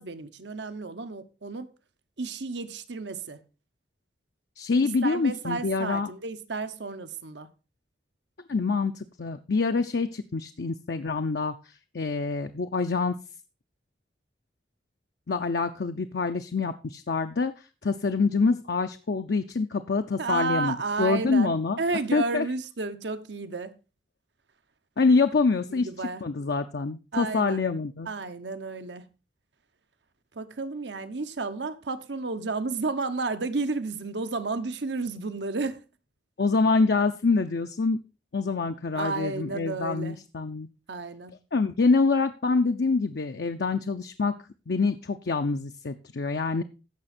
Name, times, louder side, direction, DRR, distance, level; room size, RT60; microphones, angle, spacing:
voice 1, 0.0-1.7 2.2-3.4 5.0-7.5 20.2-23.7 25.7-26.2 27.1-27.6 28.1-29.0 30.3-35.8 38.9-40.2 40.9-41.3, right 3 dB, 85° right, 1.0 m, -32 dB
voice 2, 4.6-6.1 8.5-11.5 11.9-13.2 15.3-17.5 17.8-21.8 22.1-22.5 25.0-25.9 26.2-28.1 36.4-38.0 38.3-40.7 41.5-44.3 44.7-46.6, left 4 dB, 65° left, 0.6 m, -26 dB
15.5 x 5.9 x 4.3 m
head